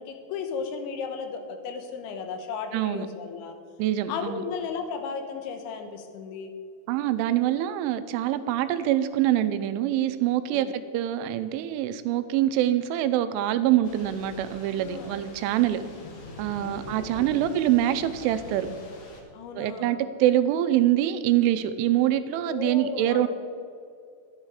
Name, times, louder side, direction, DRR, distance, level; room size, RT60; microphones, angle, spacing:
voice 1, 0.0-3.6 4.1-6.5 10.4-10.7 14.8-15.1 16.6-17.3 19.3-20.0 22.5-23.3, left 5 dB, 80° left, 6 dB, 3.4 m, -35 dB
voice 2, 2.7-3.1 3.8-4.4 6.9-15.8 16.4-18.7 19.6-23.3, right 12 dB, 90° right, 11 dB, 3.1 m, -25 dB
Thunder / Rain, 13.8-19.2, left 2 dB, 65° left, 1.8 m, -44 dB
12.5 x 9.8 x 4.8 m, 2.4 s
omnidirectional pair, 5.4 m